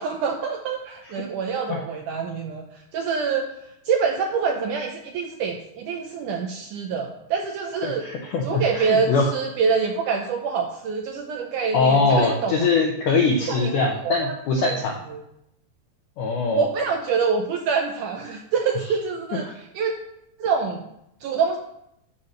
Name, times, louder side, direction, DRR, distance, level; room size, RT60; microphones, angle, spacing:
voice 1, 0.0-3.5 3.9-8.0 8.4-12.7 13.5-14.8 15.1-15.2 16.5-19.9 20.4-20.9 21.2-21.6, right 5 dB, 80° right, 3 dB, 1.8 m, -26 dB
voice 2, 7.8-9.3 11.7-14.9 16.2-16.7 19.4-19.6, left 4 dB, 70° left, 0 dB, 2.0 m, -22 dB
12.5 x 4.3 x 6.5 m, 0.80 s
omnidirectional pair, 4.5 m